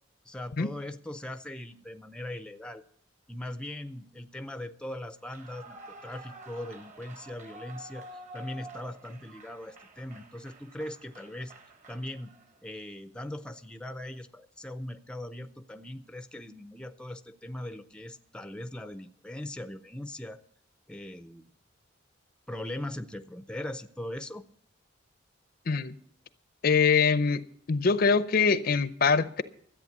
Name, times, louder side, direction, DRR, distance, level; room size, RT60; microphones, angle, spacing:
voice 1, 0.3-2.8 3.3-5.8 6.0-11.5 11.9-12.3 12.6-20.4 20.9-21.4 22.5-24.4, left 1 dB, 5° left, 0.5 m, -40 dB
Clapping / Cheering / Applause, 5.2-12.6, right 1 dB, 40° right, 1.2 m, -49 dB
voice 2, 26.6-27.4 27.7-29.4, left 5 dB, 50° left, 0.6 m, -23 dB
13.5 x 8.6 x 7.2 m
head